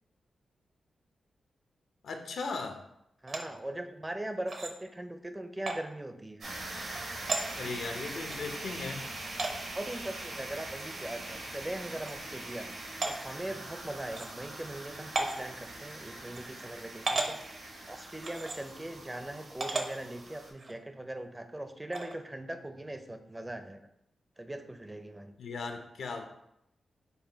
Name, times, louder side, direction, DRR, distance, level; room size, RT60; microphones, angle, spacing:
voice 1, 2.0-2.8 7.5-9.0 25.4-26.2, left 4 dB, 80° left, 5 dB, 0.6 m, -37 dB
voice 2, 3.2-6.5 9.5-12.7 13.0-17.4 17.9-23.8 24.4-25.3, right 1 dB, 15° right, 7 dB, 0.4 m, -40 dB
sound 1, 3.3-3.4 4.5-4.7 5.7-5.8 6.9-7.0 7.3-7.5 8.3-8.4 9.4-9.6 10.8-10.9 11.3-11.4 12.1-12.2 13.0-13.1 14.1-14.3 15.2-15.4 16.3-16.4 17.1-17.3 18.2-18.6 19.6-19.9 20.6-20.7 21.9-22.1, right 2 dB, 55° right, 0.7 m, -33 dB
sound 2, 6.4-20.5, right 2 dB, 85° right, 1.5 m, -43 dB
5.4 x 2.2 x 4.4 m, 0.81 s
cardioid pair, 80°, 0 cm